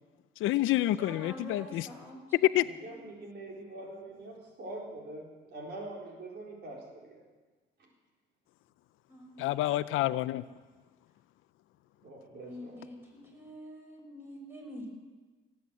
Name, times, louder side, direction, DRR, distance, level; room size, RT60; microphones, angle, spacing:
voice 1, 0.4-1.9 2.3-2.6 9.4-10.4, left 15 dB, 85° left, 16 dB, 0.5 m, -27 dB
voice 2, 0.9-3.0 9.1-9.4 12.4-14.9, equal, 10° right, -1 dB, 5.8 m, -46 dB
voice 3, 2.6-7.2 12.0-12.8, right 2 dB, 60° right, -1 dB, 4.1 m, -44 dB
17.5 x 8.7 x 7.5 m, 1.3 s
cardioid pair, 90°, 20 cm